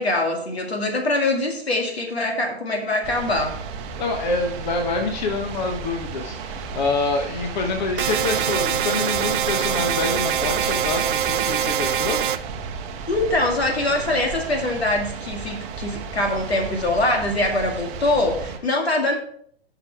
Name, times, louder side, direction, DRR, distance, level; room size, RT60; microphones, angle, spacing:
voice 1, 0.0-3.6 13.1-19.2, left 2 dB, 75° left, 2 dB, 2.3 m, -23 dB
sound 1, 3.0-18.6, right 5 dB, 20° right, 0.9 m, -34 dB
voice 2, 4.0-12.2, left 3 dB, 45° left, 3 dB, 1.3 m, -26 dB
sound 2, 8.0-12.4, right 9 dB, 55° right, 0.6 m, -23 dB
11.5 x 6.1 x 3.5 m, 0.62 s
figure-of-eight pair, 125°, 32 cm